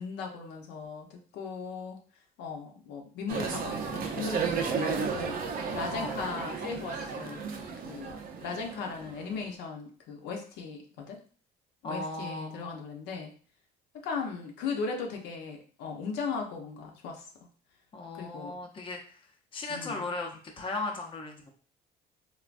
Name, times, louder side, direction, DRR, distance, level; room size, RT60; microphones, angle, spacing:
voice 1, 0.0-2.0 2.4-7.5 7.8-8.1 8.4-11.2 11.8-13.3 13.9-17.3 18.1-18.5 19.7-20.1, left 5 dB, 90° left, 1 dB, 0.7 m, -37 dB
sound 1, 3.3-9.5, right 5 dB, 60° right, 0.5 m, -34 dB
voice 2, 11.8-12.7 17.9-19.2 19.5-21.5, left 2 dB, 30° left, 2 dB, 0.6 m, -37 dB
3.3 x 2.1 x 2.5 m, 0.41 s
cardioid pair, 110°, 17 cm